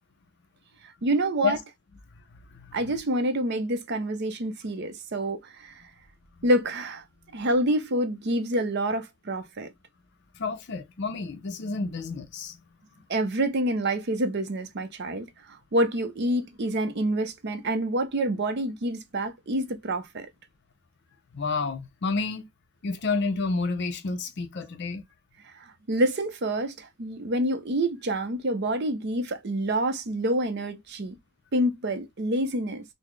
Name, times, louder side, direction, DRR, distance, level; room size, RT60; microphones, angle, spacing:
voice 1, 1.0-1.6 2.7-5.7 6.4-7.0 7.3-9.7 13.1-15.3 15.7-20.3 25.5-31.1 31.5-32.8, right 1 dB, 50° right, 0.5 m, -27 dB
voice 2, 10.4-12.6 21.3-22.5 22.8-25.0, left 4 dB, 50° left, 0.5 m, -29 dB
3.9 x 2.0 x 3.1 m
head